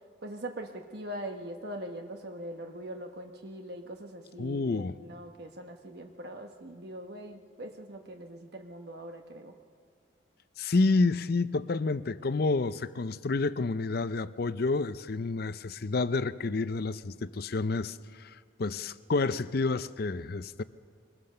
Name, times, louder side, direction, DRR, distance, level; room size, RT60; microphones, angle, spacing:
voice 1, 0.2-9.5, right 1 dB, 55° right, 1.1 m, -42 dB
voice 2, 4.4-5.0 10.6-20.6, left 3 dB, 50° left, 0.5 m, -29 dB
23.0 x 20.5 x 6.6 m
head